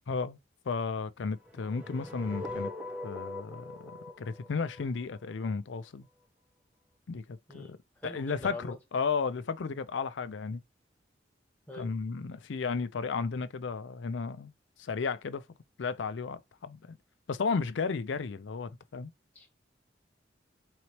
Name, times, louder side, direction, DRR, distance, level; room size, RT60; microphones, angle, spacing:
voice 1, 0.1-0.4 0.7-2.7 3.0-3.9 4.2-6.1 7.1-7.2 7.5-7.8 8.0-10.6 11.8-14.5 14.8-15.4 15.8-17.0 17.3-19.1, left 5 dB, 85° left, 0.5 m, -33 dB
sound 1, 1.4-5.5, left 2 dB, 10° right, 0.7 m, -41 dB
voice 2, 7.5-8.8 11.7-11.9 19.3-19.5, left 1 dB, 10° left, 1.1 m, -44 dB
4.0 x 3.1 x 2.9 m
head